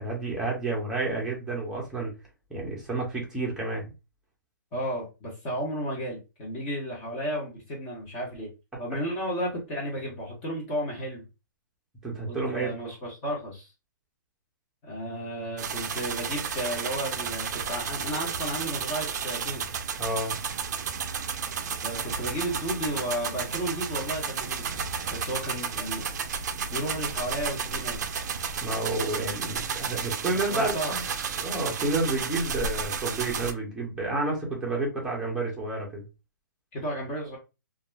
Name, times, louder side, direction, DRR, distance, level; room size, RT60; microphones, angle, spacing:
voice 1, 0.0-2.1 2.5-3.8 12.0-12.7 20.0-20.4 28.6-31.0 31.4-36.0, right 2 dB, 5° right, -3 dB, 0.8 m, -30 dB
voice 2, 4.7-8.5 8.8-11.2 12.3-13.7 14.8-19.6 21.8-24.7 25.1-26.1 26.7-28.0 30.2-30.9 36.7-37.4, equal, 25° left, -3 dB, 0.9 m, -33 dB
sound 1, 15.6-33.5, right 6 dB, 55° right, 0.4 m, -32 dB
2.4 x 2.0 x 3.2 m, 0.27 s
hypercardioid pair, 160°, 11 cm